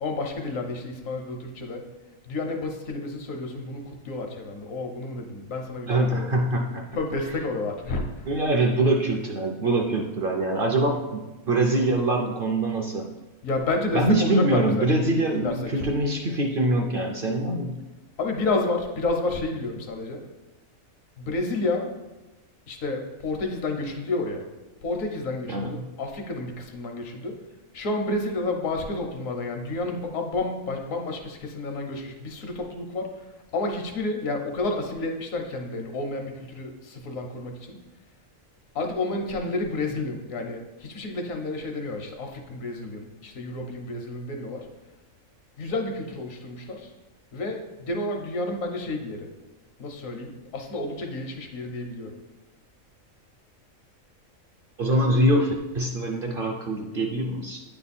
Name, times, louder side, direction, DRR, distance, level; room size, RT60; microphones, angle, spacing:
voice 1, 0.0-1.8 2.3-6.4 7.0-8.3 13.4-14.9 15.4-15.8 18.2-20.2 21.2-21.9 22.7-24.4 24.8-27.3 27.7-33.1 33.5-37.8 38.7-44.6 45.6-46.9 47.3-49.3 49.8-52.1, left 2 dB, 75° left, 3 dB, 1.3 m, -30 dB
voice 2, 5.9-6.9 8.3-13.1 13.9-17.8 25.5-25.9 54.8-57.6, right 1 dB, 55° right, 2 dB, 0.6 m, -24 dB
9.1 x 3.4 x 4.2 m, 1.1 s
omnidirectional pair, 1.4 m